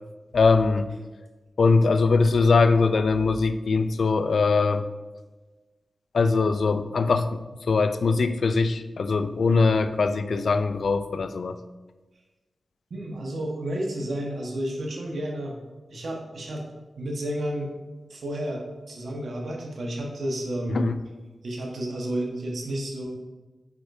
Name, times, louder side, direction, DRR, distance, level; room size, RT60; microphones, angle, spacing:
voice 1, 0.3-0.9 1.6-4.8 6.1-11.6 20.7-21.0, left 4 dB, 70° left, 11 dB, 0.4 m, -22 dB
voice 2, 12.9-15.6 15.9-16.7 17.0-17.7 18.1-20.8 21.4-23.1, right 1 dB, 75° right, 0 dB, 1.3 m, -31 dB
8.9 x 4.7 x 2.7 m, 1.2 s
cardioid pair, 45°, 0 cm